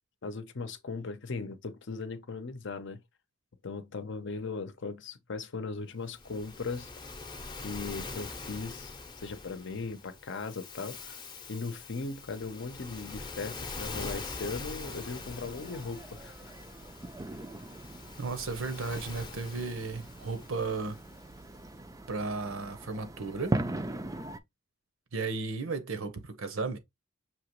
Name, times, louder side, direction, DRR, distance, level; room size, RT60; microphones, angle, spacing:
voice 1, 0.2-3.0 3.6-6.9 7.6-8.9 9.2-11.2 11.5-16.5, left 4 dB, 60° left, 0.7 m, -38 dB
Waves surf, 6.1-21.6, left 3 dB, 20° left, 0.7 m, -44 dB
sound 1, 14.8-24.4, right 2 dB, 15° right, 0.4 m, -40 dB
voice 2, 18.2-21.0 22.1-23.6 25.1-26.8, right 4 dB, 75° right, 0.8 m, -34 dB
5.8 x 2.9 x 3.0 m
head